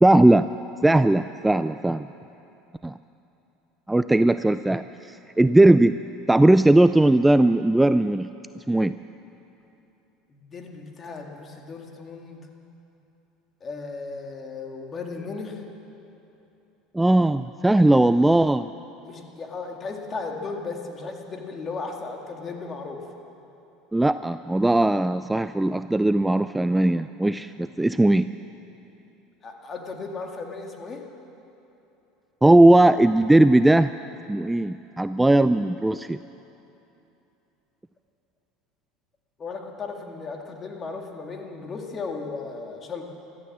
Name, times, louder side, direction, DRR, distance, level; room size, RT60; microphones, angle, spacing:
voice 1, 0.0-0.5 0.8-2.1 2.8-2.9 3.9-5.9 6.3-8.3 8.7-8.9 16.9-18.7 23.9-28.3 32.4-33.9 34.3-36.2, right 1 dB, 10° right, 12 dB, 0.3 m, -18 dB
voice 2, 10.3-12.4 13.6-15.6 19.0-23.0 29.4-31.0 39.4-43.1, left 4 dB, 30° left, 2 dB, 2.1 m, -35 dB
15.5 x 12.5 x 7.4 m, 2.9 s
supercardioid pair, 95°, 0 cm